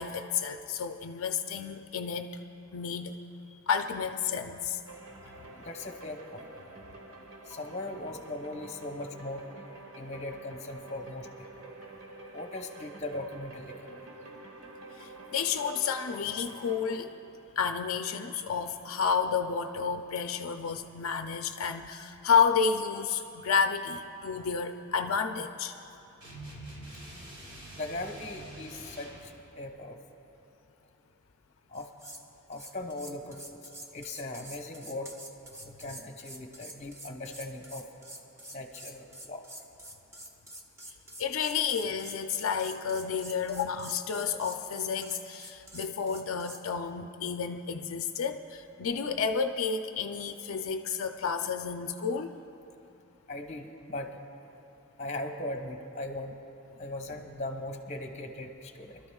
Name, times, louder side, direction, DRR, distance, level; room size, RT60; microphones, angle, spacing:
voice 1, 0.0-2.3 2.7-3.1 3.7-4.8 15.0-17.1 17.6-25.7 41.2-52.4, left 6 dB, 80° left, 6 dB, 0.5 m, -30 dB
sound 1, 4.9-17.1, right 2 dB, 75° right, 1.3 m, -48 dB
voice 2, 5.5-6.5 7.5-9.4 9.9-11.5 12.3-14.0 27.8-30.0 31.7-31.9 32.5-33.6 33.9-35.1 35.6-37.8 38.5-39.4 53.3-54.1 55.0-56.4 56.8-59.0, left 2 dB, 30° left, 3 dB, 0.9 m, -39 dB
sound 2, 26.2-29.3, right 1 dB, 55° right, 3.2 m, -45 dB
sound 3, 31.7-32.2 32.5-46.6, right 1 dB, 15° right, 0.6 m, -47 dB
25.0 x 13.0 x 2.3 m, 2.8 s
head